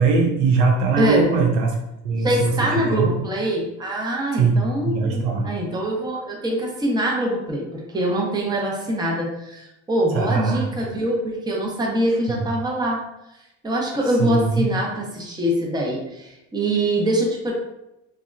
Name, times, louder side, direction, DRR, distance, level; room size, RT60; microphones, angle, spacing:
voice 1, 0.0-1.8 2.0-3.1 4.4-4.6 4.8-5.5 10.1-10.7 12.3-12.4 14.2-14.7, right 4 dB, 90° right, 0 dB, 0.7 m, -21 dB
voice 2, 1.0-1.3 2.2-13.0 13.6-17.5, right 1 dB, 15° right, -2 dB, 0.6 m, -24 dB
2.8 x 2.2 x 2.4 m, 0.91 s
supercardioid pair, 100°, 33 cm